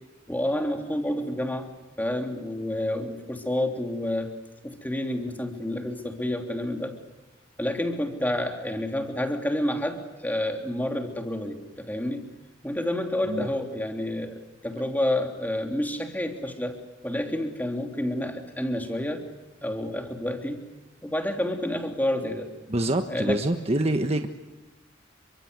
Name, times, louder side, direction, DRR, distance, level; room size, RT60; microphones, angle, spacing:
voice 1, 0.3-1.7 2.0-4.3 4.6-7.0 7.6-12.3 12.6-16.8 17.0-19.3 19.6-20.6 21.0-22.5 23.1-23.4, left 1 dB, 10° left, 4 dB, 3.3 m, -29 dB
voice 2, 22.7-24.3, right 1 dB, 30° right, 5 dB, 1.4 m, -26 dB
30.0 x 24.0 x 8.2 m, 1.1 s
head